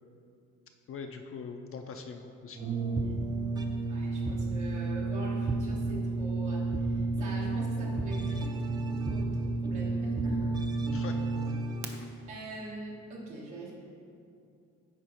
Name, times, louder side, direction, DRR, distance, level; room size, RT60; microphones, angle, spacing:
voice 1, 0.9-2.7 10.9-11.2, left 5 dB, 45° left, 5 dB, 0.4 m, -41 dB
sound 1, 2.5-3.9 4.2-4.9 5.5-6.1 6.7-11.9, right 2 dB, 15° right, 0.4 m, -38 dB
Brass instrument, 2.6-11.9, right 3 dB, 60° right, 0.7 m, -32 dB
voice 2, 3.9-10.5 11.9-13.7, right 1 dB, 80° right, -5 dB, 1.3 m, -43 dB
9.9 x 3.7 x 3.0 m, 2.5 s
cardioid pair, 90°, 30 cm